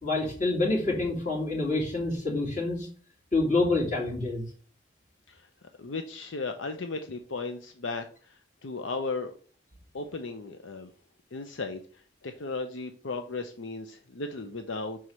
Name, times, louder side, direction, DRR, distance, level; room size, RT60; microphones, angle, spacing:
voice 1, 0.0-2.9 3.3-4.4, left 2 dB, 40° left, -2 dB, 2.8 m, -27 dB
voice 2, 5.3-9.3 9.9-10.9 11.3-15.0, left 3 dB, 75° left, 6 dB, 0.7 m, -36 dB
6.2 x 4.7 x 5.5 m, 0.42 s
head